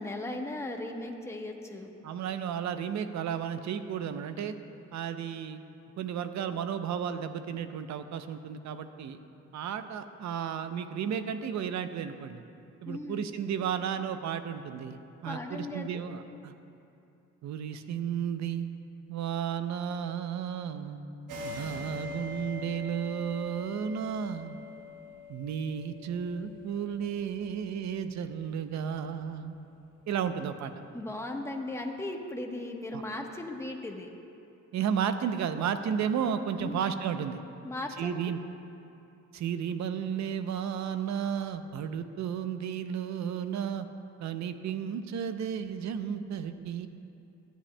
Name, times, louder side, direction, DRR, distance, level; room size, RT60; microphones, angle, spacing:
voice 1, 0.0-1.9 12.9-13.2 15.3-16.0 30.9-34.1 36.6-36.9 37.6-38.2, left 2 dB, 10° left, 2 dB, 1.0 m, -37 dB
voice 2, 2.0-4.6 4.9-5.6 6.0-9.2 9.5-12.4 12.8-16.5 17.4-18.7 19.1-24.6 25.3-29.5 30.1-30.7 32.9-33.0 34.7-37.4 38.0-38.4 39.3-43.9 44.2-46.9, right 8 dB, 65° right, 10 dB, 0.6 m, -33 dB
sound 1, 21.3-28.4, left 2 dB, 85° right, 1.1 m, -43 dB
17.0 x 10.0 x 2.2 m, 2.7 s
cardioid pair, 90°, 30 cm